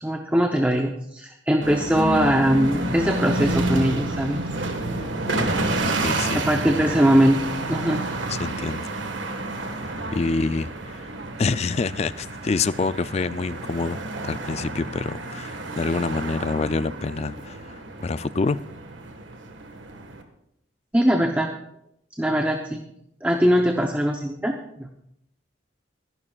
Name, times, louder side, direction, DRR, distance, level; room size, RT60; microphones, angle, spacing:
voice 1, 0.0-4.4 6.3-7.4 7.7-8.0 20.9-21.5 22.2-22.8 23.2-24.9, equal, 10° right, 0.7 m, -21 dB
sound 1, 1.6-20.2, right 2 dB, 80° right, 1.6 m, -29 dB
voice 2, 5.2-6.4 8.3-8.9 10.1-11.1 11.4-18.6, left 4 dB, 35° left, 0.3 m, -27 dB
24.0 x 11.0 x 2.4 m
head